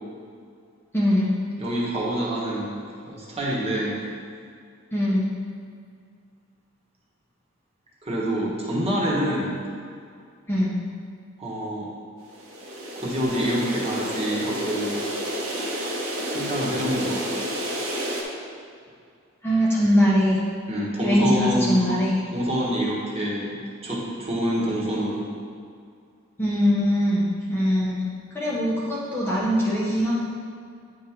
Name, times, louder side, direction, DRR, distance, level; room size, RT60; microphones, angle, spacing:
voice 1, 0.9-1.3 4.9-5.3 10.5-10.8 19.4-20.4 21.0-22.2 26.4-28.1 28.3-30.2, equal, 10° left, -6 dB, 0.8 m, -22 dB
voice 2, 1.6-4.0 8.0-9.6 11.4-11.9 12.9-15.0 16.3-17.2 20.7-21.9 22.3-25.3, equal, 30° right, -5 dB, 1.3 m, -26 dB
sound 1, 12.3-18.2, equal, 70° right, 1.1 m, -30 dB
9.1 x 3.6 x 4.4 m, 2.3 s
head